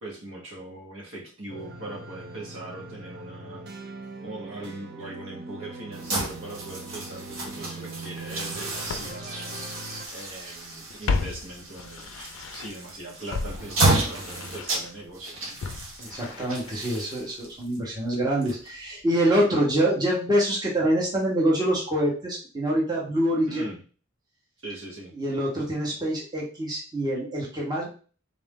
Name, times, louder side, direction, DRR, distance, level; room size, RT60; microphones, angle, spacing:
voice 1, 0.0-3.6 4.2-9.7 10.1-15.6 23.5-23.8 24.6-25.2, right 1 dB, 70° right, -2 dB, 1.4 m, -40 dB
sound 1, 1.5-10.1, right 3 dB, 55° right, 0.6 m, -41 dB
sound 2, 5.9-19.0, right 2 dB, 90° right, 1.2 m, -31 dB
Walk footsteps, 8.2-8.3 8.9-10.4 10.6-12.9 13.3-17.4 17.6-17.7, left 4 dB, 80° left, 0.4 m, -35 dB
voice 2, 16.0-23.7 25.1-27.9, right 1 dB, 20° right, -4 dB, 1.0 m, -25 dB
3.7 x 2.6 x 3.6 m, 0.38 s
head